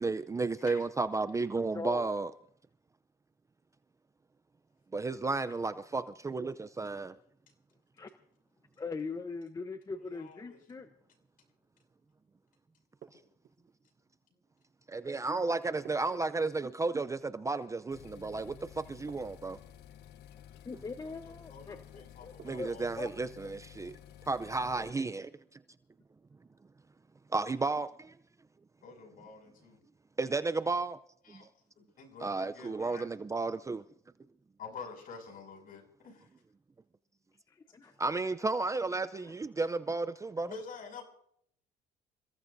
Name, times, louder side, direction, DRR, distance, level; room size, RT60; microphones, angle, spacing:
voice 1, 0.0-2.3 4.9-7.1 14.9-19.6 22.4-24.0 24.3-25.3 27.3-28.1 30.2-31.0 31.3-31.5 32.2-33.8 38.0-39.0 39.3-40.5, right 3 dB, 20° right, 0.5 m, -33 dB
voice 2, 1.7-2.1 8.0-8.1 8.8-10.9 20.6-22.7 23.0-23.1 37.5-38.5 39.6-39.7, left 4 dB, 20° left, 0.9 m, -41 dB
voice 3, 10.0-10.6 21.0-22.9 28.8-29.8 31.2-31.5 31.8-33.1 34.6-36.3 40.5-41.0, left 5 dB, 55° left, 6.5 m, -48 dB
sound 1, 13.0-13.8 15.8-16.9 19.1-19.8 22.4-23.0, right 8 dB, 55° right, 6.0 m, -55 dB
sound 2, 17.9-24.9, left 10 dB, 80° left, 0.8 m, -53 dB
29.0 x 16.5 x 2.7 m
cardioid pair, 110°, 17 cm